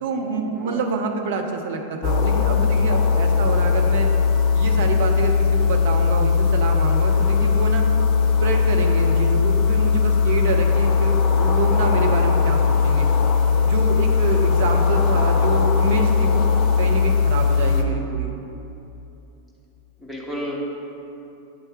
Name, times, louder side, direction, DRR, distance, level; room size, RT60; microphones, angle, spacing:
voice 1, 0.0-4.1 4.5-7.9 8.4-13.1 13.6-18.3, right 3 dB, 55° right, 4 dB, 0.6 m, -27 dB
sound 1, 2.0-17.8, left 5 dB, 40° left, 0.5 m, -19 dB
voice 2, 20.0-20.6, equal, 5° right, -4 dB, 1.2 m, -32 dB
8.2 x 3.3 x 4.5 m, 2.9 s
figure-of-eight pair, 90°, 0 cm